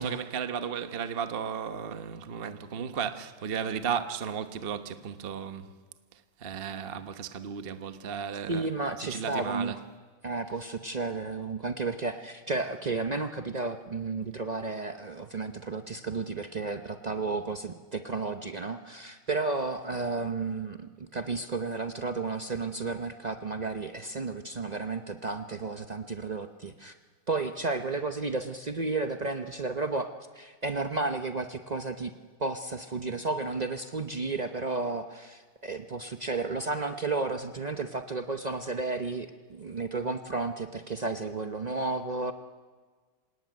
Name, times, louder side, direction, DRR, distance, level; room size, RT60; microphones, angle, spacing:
voice 1, 0.0-5.7 6.4-8.7 9.0-9.8, right 7 dB, 40° right, 0.9 m, -34 dB
voice 2, 8.5-9.7 10.2-27.0 27.3-32.1 32.4-42.3, right 3 dB, 90° right, 0.3 m, -32 dB
26.5 x 18.0 x 9.5 m
omnidirectional pair, 2.2 m